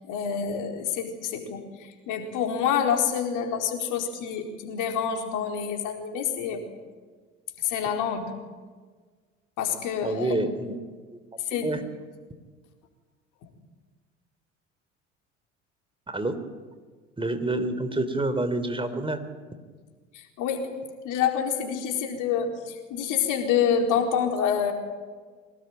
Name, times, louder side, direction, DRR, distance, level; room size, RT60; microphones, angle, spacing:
voice 1, 0.1-1.6 2.1-6.6 7.6-8.3 9.6-10.3 11.5-11.7 20.4-20.7 21.0-24.7, left 7 dB, 60° left, 4 dB, 4.4 m, -27 dB
voice 2, 10.0-10.8 11.5-11.8 16.1-16.4 17.2-19.2, right 2 dB, 15° right, 10 dB, 3.5 m, -27 dB
23.5 x 19.5 x 9.3 m, 1.5 s
figure-of-eight pair, 60°, 36 cm